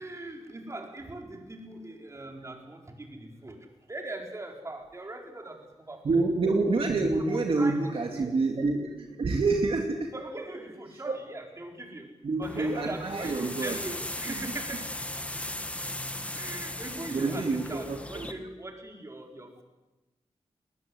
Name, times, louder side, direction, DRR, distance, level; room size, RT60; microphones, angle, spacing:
voice 1, 0.0-3.6 3.9-6.1 7.2-8.3 9.1-9.2 10.1-14.9 16.2-19.6, right 2 dB, 25° right, 2 dB, 4.5 m, -41 dB
voice 2, 6.0-10.1 11.1-11.2 12.2-13.8 14.4-14.5 17.1-18.3, right 3 dB, 55° right, 2 dB, 2.6 m, -27 dB
sound 1, 12.4-18.3, left 1 dB, 10° left, 1.8 m, -37 dB
20.5 x 19.5 x 9.8 m, 1.1 s
wide cardioid pair, 145°, 11 cm